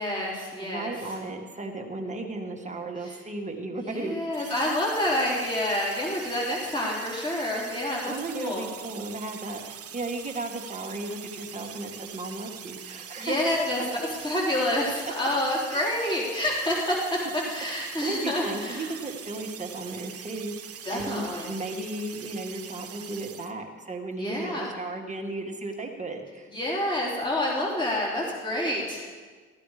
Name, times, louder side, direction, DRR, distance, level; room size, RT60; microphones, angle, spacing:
voice 1, 0.0-1.2 3.0-3.2 3.7-8.7 13.2-19.0 20.8-21.5 24.1-24.7 26.5-29.1, left 1 dB, 15° left, -4 dB, 3.9 m, -28 dB
voice 2, 0.6-4.2 8.0-13.6 15.7-15.8 17.8-26.5, right 2 dB, 25° right, 2 dB, 1.8 m, -35 dB
sound 1, 4.3-23.5, right 9 dB, 50° right, 0.9 m, -43 dB
16.0 x 12.5 x 5.0 m, 1.5 s
cardioid pair, 90°, 30 cm